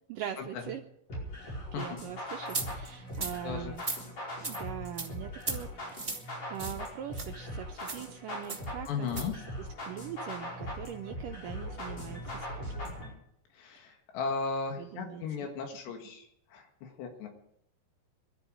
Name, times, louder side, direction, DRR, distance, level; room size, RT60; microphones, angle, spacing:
voice 1, 0.1-0.8 1.4-3.8 4.4-6.0 6.5-13.0 14.8-15.5, right 10 dB, 85° right, 4 dB, 1.9 m, -42 dB
sound 1, 1.1-13.1, left 1 dB, 40° left, 6.1 m, -40 dB
sound 2, 2.5-2.7 3.1-3.3 3.8-4.0 4.4-4.6 5.0-5.1 5.4-5.6 5.9-6.2 6.6-6.8 7.1-7.3 7.8-8.0 8.5-8.6 9.1-9.3, right 3 dB, 25° right, 1.0 m, -35 dB
voice 2, 3.4-3.8 8.9-9.3 13.6-16.3 16.5-17.3, left 5 dB, 85° left, 3 dB, 4.1 m, -36 dB
22.5 x 12.5 x 5.0 m, 0.75 s
omnidirectional pair, 4.8 m